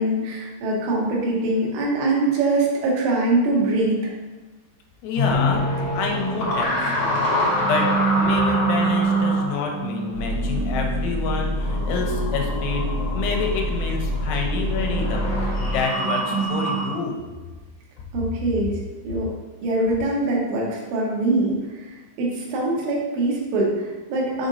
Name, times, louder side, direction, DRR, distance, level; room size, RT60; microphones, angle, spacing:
voice 1, 0.0-4.1 18.1-19.3 19.6-21.9 22.2-24.5, right 2 dB, 75° right, -3 dB, 3.2 m, -23 dB
voice 2, 5.0-5.6 5.9-12.9 13.1-17.2, left 4 dB, 85° left, 2 dB, 3.1 m, -28 dB
sound 1, 5.2-16.9, right 1 dB, 60° left, 1.5 m, -25 dB
sound 2, 10.1-15.8, left 1 dB, 55° right, 2.0 m, -27 dB
7.2 x 5.0 x 2.6 m, 1.2 s
omnidirectional pair, 5.4 m